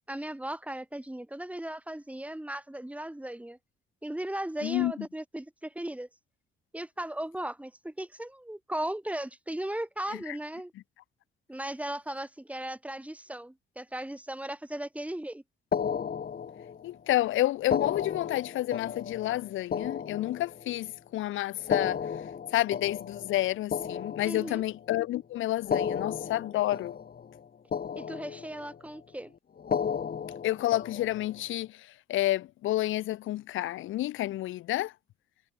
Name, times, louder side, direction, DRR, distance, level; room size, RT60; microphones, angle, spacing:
voice 1, 0.1-3.6 4.0-6.1 6.7-10.7 11.5-15.4 24.2-24.6 28.0-29.3, right 1 dB, 5° right, 5.8 m, -37 dB
voice 2, 4.6-4.9 10.3-10.4 16.8-22.0 22.5-26.9 30.4-34.9, left 15 dB, 85° left, 1.2 m, -30 dB
sound 1, 15.7-17.0 17.6-20.9 21.6-24.9 25.6-27.4 27.7-28.8 29.6-31.4, left 7 dB, 50° left, 6.0 m, -34 dB
cardioid pair, 90°, 20 cm